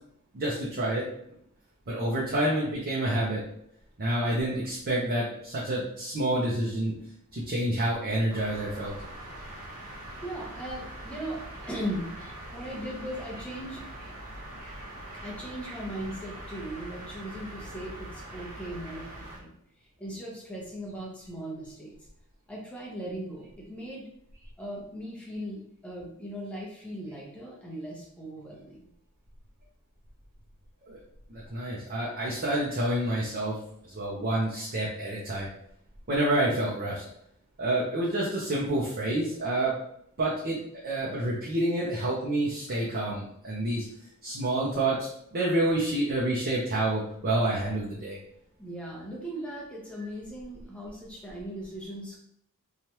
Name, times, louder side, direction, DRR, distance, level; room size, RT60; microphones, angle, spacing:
voice 1, 0.3-1.1 1.9-3.4 4.0-6.9 7.3-8.9 30.9-31.0 31.3-33.6 33.8-35.5 36.1-37.0 37.6-39.8 40.2-40.6 40.8-43.9 44.2-48.2, right 1 dB, 45° right, -5 dB, 0.6 m, -28 dB
sound 1, 8.3-19.4, right 1 dB, 85° right, 1.0 m, -43 dB
voice 2, 10.2-12.1 12.5-13.9 15.2-19.5 19.8-21.9 22.5-24.1 24.6-28.8 48.6-52.2, equal, 5° left, -4 dB, 0.7 m, -38 dB
3.1 x 2.4 x 2.8 m, 0.71 s
head